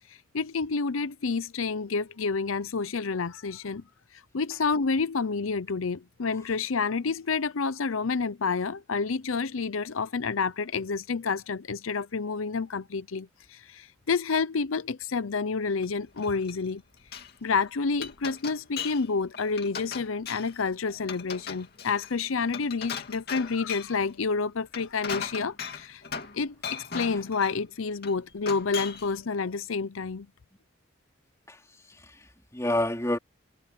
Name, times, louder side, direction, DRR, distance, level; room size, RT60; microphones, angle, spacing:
voice 1, 0.3-3.8 4.3-16.8 17.4-26.0 26.3-30.3, left 4 dB, 85° left, 0.7 m, -29 dB
Glass, 15.8-16.7 17.0-17.3 17.7-19.1 19.3-20.6 21.0-24.0 24.6-26.4 26.6-27.6 28.0-29.1, left 6 dB, 50° left, 2.5 m, -38 dB
voice 2, 31.5-33.2, left 1 dB, 15° left, 3.0 m, -30 dB
head